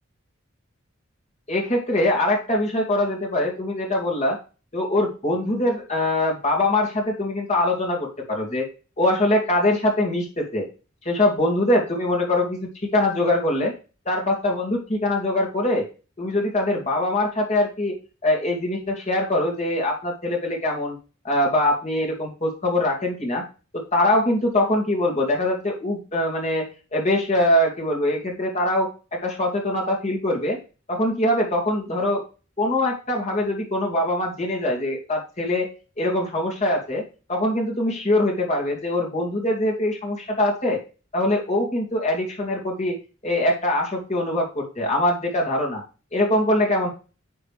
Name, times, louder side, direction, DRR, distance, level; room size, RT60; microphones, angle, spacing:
voice 1, 1.5-4.4 4.7-8.7 9.0-10.7 11.0-13.7 14.1-15.9 16.2-18.0 18.2-21.0 21.2-23.4 23.7-26.7 26.9-30.6 30.9-32.2 32.6-35.7 36.0-37.0 37.3-40.8 41.1-43.0 43.2-45.8 46.1-46.9, left 1 dB, 35° left, -1 dB, 2.4 m, -23 dB
10.0 x 4.0 x 3.4 m, 0.34 s
head